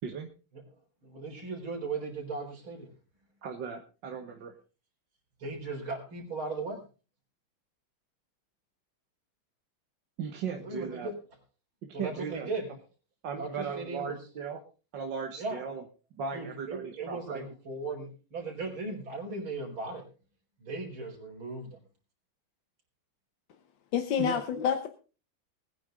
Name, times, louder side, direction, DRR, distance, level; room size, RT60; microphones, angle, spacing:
voice 1, 1.0-2.9 5.4-6.8 10.5-11.2 11.9-12.7 13.4-14.3 15.3-15.6 16.3-20.1 20.6-21.8, right 3 dB, 90° right, 0 dB, 5.0 m, -37 dB
voice 2, 3.4-4.5 10.2-11.1 11.8-12.5 13.2-14.6 14.9-15.8 16.1-17.5 24.2-24.4, right 6 dB, 65° right, 3 dB, 1.9 m, -37 dB
voice 3, 23.9-24.9, left 8 dB, 65° left, 7 dB, 1.7 m, -28 dB
20.5 x 9.5 x 3.8 m, 0.34 s
omnidirectional pair, 2.2 m